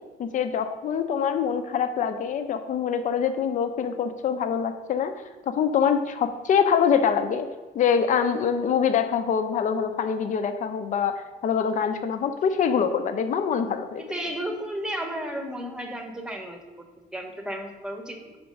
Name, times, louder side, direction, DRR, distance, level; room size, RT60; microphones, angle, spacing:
voice 1, 0.2-5.1 5.5-7.5 7.7-14.0, left 7 dB, 50° left, 8 dB, 0.6 m, -24 dB
voice 2, 14.0-16.9 17.1-18.4, equal, 5° right, 4 dB, 0.9 m, -33 dB
5.2 x 4.7 x 5.1 m, 1.3 s
cardioid pair, 110°, 17 cm